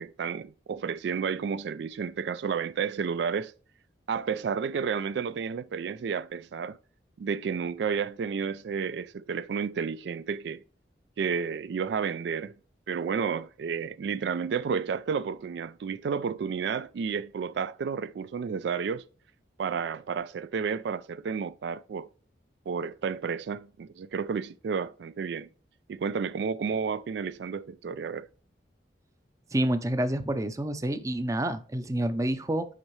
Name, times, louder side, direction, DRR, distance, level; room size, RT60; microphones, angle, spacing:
voice 1, 0.0-3.5 4.1-6.8 7.2-10.6 11.2-12.5 12.9-19.0 19.6-22.1 22.7-25.5 25.9-28.3, right 6 dB, 75° right, 0.3 m, -31 dB
voice 2, 29.5-32.7, right 1 dB, 20° right, 0.5 m, -28 dB
7.4 x 5.4 x 3.2 m
head